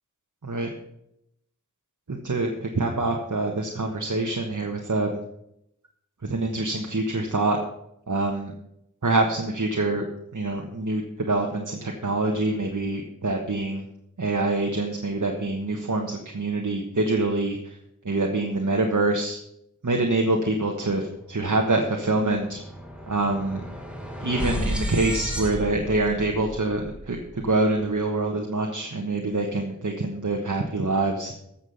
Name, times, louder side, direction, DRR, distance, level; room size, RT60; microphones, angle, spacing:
voice 1, 2.1-5.2 6.2-7.6 8.1-8.5 9.0-10.0 10.3-13.8 14.2-17.6 18.0-19.4 19.8-22.6 23.1-23.6 24.2-27.2 27.4-31.3, right 2 dB, 75° right, 1 dB, 1.4 m, -25 dB
sound 1, 21.2-21.4 21.7-27.9, equal, 5° right, 2.4 m, -33 dB
14.5 x 7.3 x 5.7 m, 0.77 s
wide cardioid pair, 45°, 31 cm